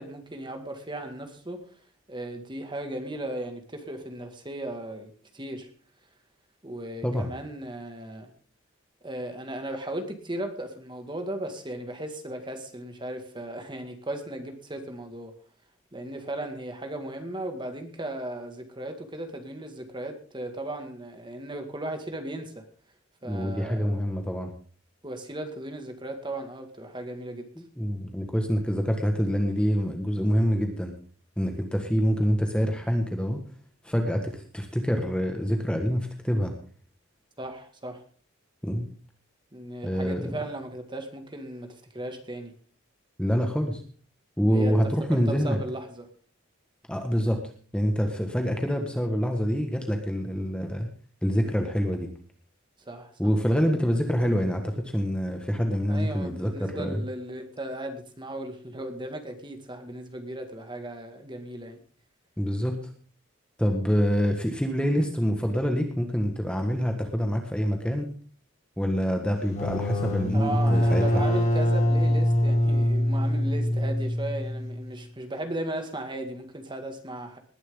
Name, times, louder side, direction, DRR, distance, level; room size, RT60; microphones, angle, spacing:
voice 1, 0.0-1.7 2.1-5.7 6.6-8.3 9.0-15.3 15.9-22.7 23.2-23.9 25.0-27.5 37.4-38.0 39.5-42.5 44.5-46.1 52.8-53.3 55.9-61.8 70.3-77.4, right 1 dB, 25° right, 6 dB, 2.1 m, -36 dB
voice 2, 23.2-24.5 27.6-30.9 31.4-33.5 33.8-36.5 38.6-38.9 39.8-40.3 43.2-43.8 44.4-45.6 46.9-47.4 47.7-50.9 51.2-52.1 53.2-57.0 62.4-62.9 63.6-68.1 68.8-71.3, equal, 5° left, 4 dB, 1.6 m, -26 dB
sound 1, 69.4-74.9, left 1 dB, 35° left, 5.9 m, -24 dB
20.0 x 11.0 x 3.8 m, 0.42 s
head